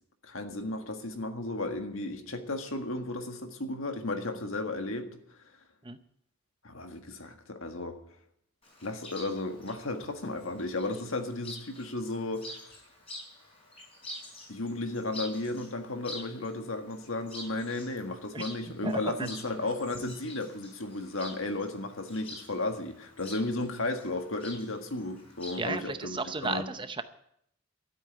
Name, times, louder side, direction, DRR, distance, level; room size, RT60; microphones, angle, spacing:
voice 1, 0.2-5.1 6.6-8.0 8.8-12.7 14.5-26.7, left 2 dB, 70° left, 6 dB, 1.7 m, -34 dB
Chirp tweet, 8.6-25.7, left 1 dB, 25° left, 4.6 m, -48 dB
voice 2, 18.8-19.3 25.6-27.0, right 3 dB, 20° right, 10 dB, 0.7 m, -34 dB
12.5 x 8.1 x 9.2 m, 0.72 s
head